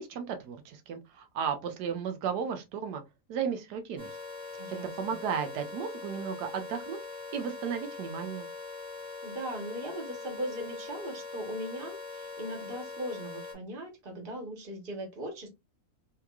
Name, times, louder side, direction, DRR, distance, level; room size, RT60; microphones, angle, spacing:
voice 1, 0.0-3.0 3.3-4.2 5.0-7.0 7.3-8.5, right 7 dB, 90° right, 1.3 m, -34 dB
sound 1, 4.0-13.5, left 4 dB, 5° left, 1.3 m, -42 dB
voice 2, 4.6-5.2 9.2-15.5, equal, 35° right, 1.2 m, -39 dB
3.5 x 2.9 x 2.3 m
omnidirectional pair, 1.7 m